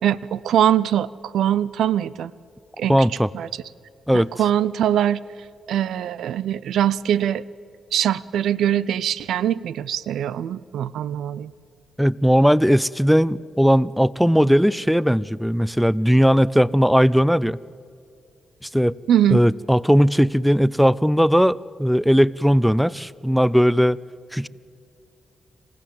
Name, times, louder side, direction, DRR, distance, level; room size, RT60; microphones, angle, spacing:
voice 1, 0.0-2.3 2.8-3.0 3.3-3.5 4.1-5.2 5.7-7.4 7.9-11.5 19.1-19.4, right 10 dB, 85° right, 19 dB, 0.4 m, -22 dB
voice 2, 2.9-3.3 4.1-4.3 12.0-17.6 18.7-18.9 19.3-24.0 24.3-24.5, equal, ahead, 21 dB, 0.5 m, -18 dB
27.5 x 15.5 x 7.6 m, 2.3 s
cardioid pair, 60°, 0 cm